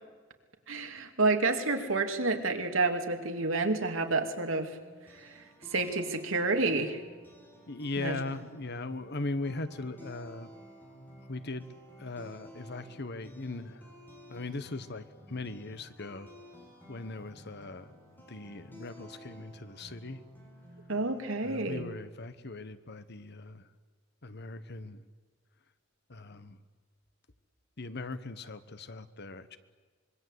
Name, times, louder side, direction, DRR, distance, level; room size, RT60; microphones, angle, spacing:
voice 1, 0.7-4.7 5.2-5.3 5.7-7.0 8.0-8.2 20.9-21.9, right 3 dB, 75° right, 5 dB, 2.7 m, -29 dB
sound 1, 4.8-21.7, equal, 10° left, 6.6 m, -53 dB
voice 2, 7.7-10.5 11.3-11.6 12.0-13.9 14.3-16.3 16.9-17.9 18.3-20.2 21.4-23.6 24.2-25.0 26.1-26.6 27.8-29.6, left 2 dB, 55° left, 12 dB, 1.4 m, -39 dB
25.5 x 22.5 x 8.3 m, 1.5 s
head